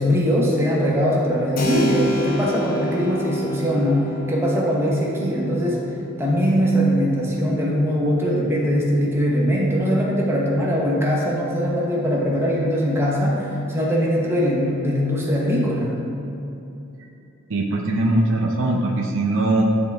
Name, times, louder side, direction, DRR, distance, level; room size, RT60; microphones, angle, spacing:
voice 1, 0.0-5.8 6.2-15.9, equal, 10° right, -4 dB, 0.9 m, -21 dB
Keyboard (musical), 1.6-9.9, right 1 dB, 40° left, 0.9 m, -30 dB
voice 2, 17.5-19.6, right 2 dB, 65° right, 1 dB, 0.6 m, -21 dB
10.0 x 3.6 x 3.5 m, 2.8 s
head